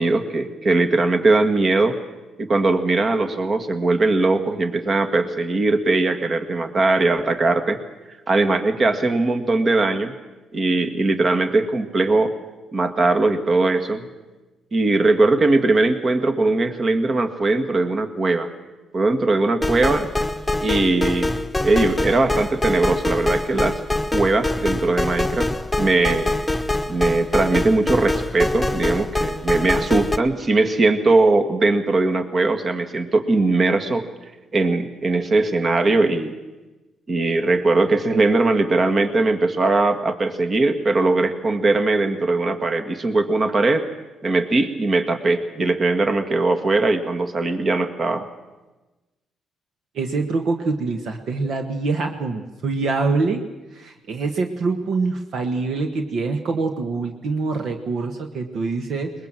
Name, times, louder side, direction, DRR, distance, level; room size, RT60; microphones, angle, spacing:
voice 1, 0.0-2.0 2.4-7.8 8.3-10.1 10.5-12.3 12.7-14.1 14.7-18.5 18.9-20.1 20.6-21.3 21.6-23.8 24.1-25.5 25.8-26.3 26.9-34.0 34.5-36.3 37.1-43.8 44.2-48.2, right 2 dB, 40° right, 8 dB, 1.9 m, -20 dB
sound 1, 19.6-30.2, left 2 dB, 5° left, 1.1 m, -24 dB
voice 2, 49.9-53.5 53.7-59.1, right 3 dB, 65° right, 5 dB, 1.4 m, -25 dB
21.5 x 20.5 x 7.6 m, 1.1 s
cardioid pair, 90°, 0 cm